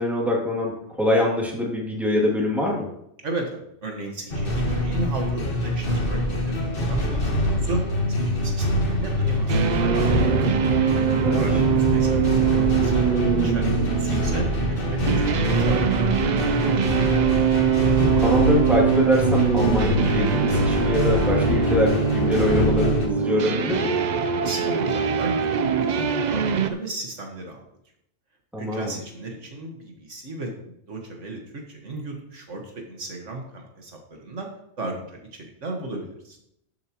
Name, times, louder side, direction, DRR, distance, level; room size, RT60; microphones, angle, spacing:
voice 1, 0.0-2.9 11.2-11.5 18.0-24.0 28.5-28.9, left 1 dB, ahead, -3 dB, 2.5 m, -24 dB
voice 2, 3.2-10.3 11.3-16.9 24.4-27.6 28.6-34.5 34.8-36.4, right 2 dB, 75° right, 2 dB, 1.9 m, -35 dB
sound 1, 4.3-23.1, left 1 dB, 45° left, 1.7 m, -24 dB
sound 2, 9.5-26.7, right 7 dB, 50° right, 0.5 m, -23 dB
13.0 x 7.5 x 3.0 m, 0.75 s
omnidirectional pair, 1.3 m